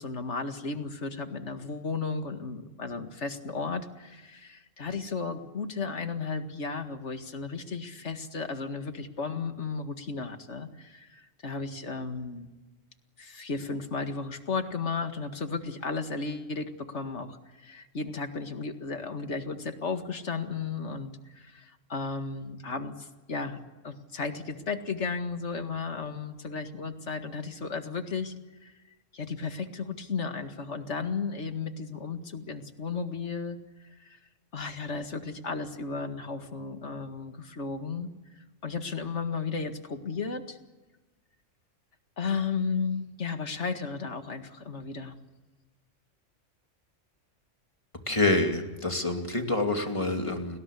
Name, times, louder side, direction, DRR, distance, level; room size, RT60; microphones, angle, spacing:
voice 1, 0.0-12.5 13.2-23.6 23.8-28.3 28.6-28.7 29.1-33.6 34.0-34.2 34.5-38.1 38.6-40.6 42.2-45.2, left 4 dB, 65° left, 7 dB, 2.2 m, -34 dB
voice 2, 48.1-50.6, left 2 dB, 25° left, 4 dB, 2.8 m, -27 dB
29.5 x 20.0 x 8.4 m, 1.2 s
omnidirectional pair, 1.3 m